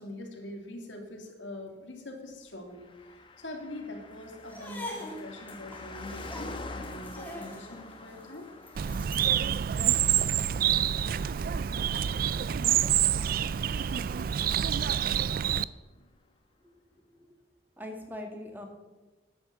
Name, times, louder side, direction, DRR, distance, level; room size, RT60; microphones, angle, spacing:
voice 1, 0.0-8.5 16.0-16.1, left 1 dB, 80° left, 2 dB, 2.0 m, -43 dB
Car passing by, 2.7-14.6 14.8-14.9, left 2 dB, 25° left, 1.0 m, -47 dB
sound 1, 4.4-9.4, left 1 dB, 10° left, 2.4 m, -44 dB
Bird, 8.8-15.7, right 9 dB, 50° right, 0.3 m, -27 dB
voice 2, 17.8-18.7, left 1 dB, 10° right, 3 dB, 1.8 m, -41 dB
11.5 x 8.6 x 7.2 m, 1.2 s
head